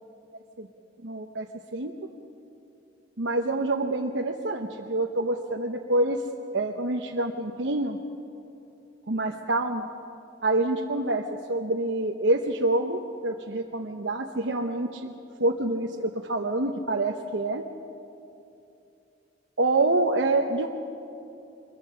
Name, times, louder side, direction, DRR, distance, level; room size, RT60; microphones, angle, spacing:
voice 1, 1.0-1.5 1.7-1.9 3.2-6.2 6.5-8.0 9.1-9.9 10.4-15.1 15.4-17.6 19.6-20.7, right 2 dB, 75° right, 1 dB, 1.0 m, -26 dB
24.5 x 21.5 x 5.7 m, 2.8 s
head